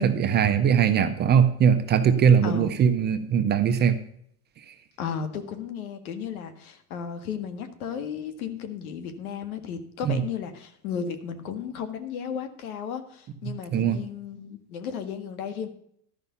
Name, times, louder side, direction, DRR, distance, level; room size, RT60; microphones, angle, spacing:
voice 1, 0.0-4.0 10.0-10.2 13.7-14.0, right 7 dB, 25° right, 8 dB, 0.7 m, -21 dB
voice 2, 2.4-2.8 5.0-15.7, left 7 dB, 75° left, 10 dB, 1.7 m, -34 dB
12.0 x 5.5 x 6.8 m, 0.67 s
supercardioid pair, 125°, 43 cm